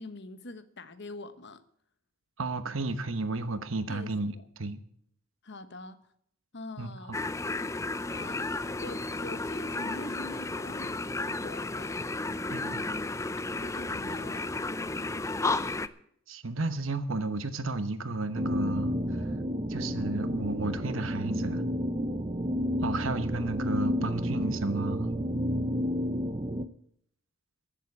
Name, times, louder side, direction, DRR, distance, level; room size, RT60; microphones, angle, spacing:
voice 1, 0.0-1.6 3.9-4.4 5.4-6.0 6.5-7.2 8.1-12.0 13.6-15.6, left 2 dB, 55° left, 1.2 m, -44 dB
voice 2, 2.4-4.8 6.8-7.2 12.5-12.9 16.3-18.9 19.7-21.6 22.8-25.1, right 3 dB, 70° right, 1.1 m, -33 dB
sound 1, 7.1-15.9, left 2 dB, 15° left, 0.4 m, -33 dB
sound 2, 18.4-26.7, equal, 30° right, 0.6 m, -31 dB
15.0 x 7.3 x 8.3 m
head